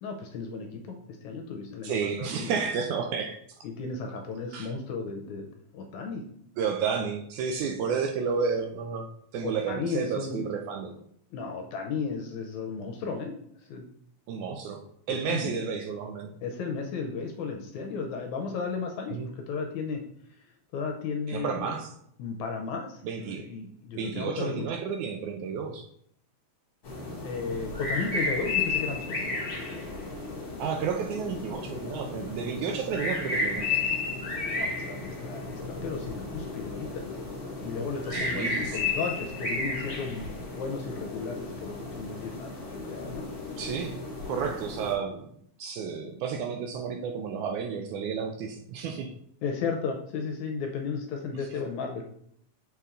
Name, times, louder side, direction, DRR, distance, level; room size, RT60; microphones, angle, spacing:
voice 1, 0.0-2.5 3.6-6.2 9.4-10.5 11.3-13.3 13.7-13.9 15.1-15.6 16.4-20.0 20.7-21.7 22.2-24.6 27.2-29.2 34.6-37.1 37.6-43.3 49.4-52.0, left 5 dB, 75° left, 3 dB, 1.8 m, -34 dB
voice 2, 1.8-3.4 4.5-4.7 6.6-11.0 14.3-14.8 15.1-16.3 19.1-19.3 21.3-21.9 23.0-23.5 24.0-25.8 30.6-33.9 38.1-38.8 43.1-43.2 43.6-44.0 44.3-45.3 45.6-49.1, right 6 dB, 80° right, 4 dB, 1.8 m, -31 dB
sound 1, 26.8-44.9, left 3 dB, 25° left, 1.8 m, -33 dB
6.9 x 4.5 x 3.6 m, 0.69 s
omnidirectional pair, 3.8 m